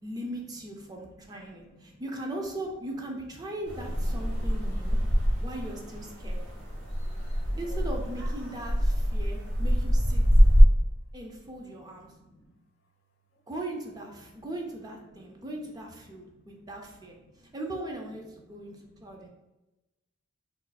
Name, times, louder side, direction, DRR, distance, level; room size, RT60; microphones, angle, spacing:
voice 1, 0.0-5.0 5.4-6.4 7.6-10.2 11.1-12.1 13.5-17.2 17.5-19.3, right 1 dB, 20° right, 1 dB, 0.4 m, -39 dB
voice 2, 1.6-2.0 6.3-6.8 7.5-7.9 9.4-9.6 10.4-10.6 11.5-12.5 15.2-15.4 16.2-16.5 17.1-17.5 18.5-19.3, left 1 dB, 75° left, 3 dB, 0.6 m, -57 dB
sound 1, 3.6-10.6, equal, 85° right, 0.9 m, -24 dB
2.4 x 2.3 x 4.0 m, 1.0 s
head